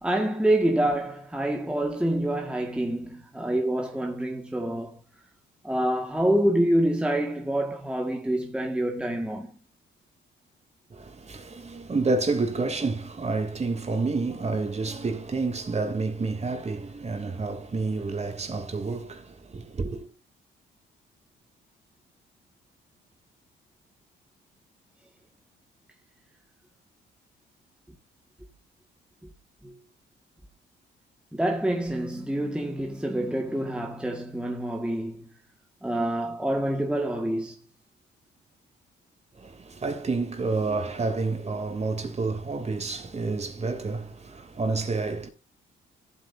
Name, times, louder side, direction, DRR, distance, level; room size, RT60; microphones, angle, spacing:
voice 1, 0.0-5.0 5.6-9.5 29.6-29.7 31.3-35.3 35.8-37.6, right 1 dB, 5° right, 1.8 m, -27 dB
voice 2, 10.9-20.1 39.4-45.3, right 3 dB, 35° right, 3.0 m, -29 dB
15.0 x 8.6 x 2.7 m
cardioid pair, 90°, 20 cm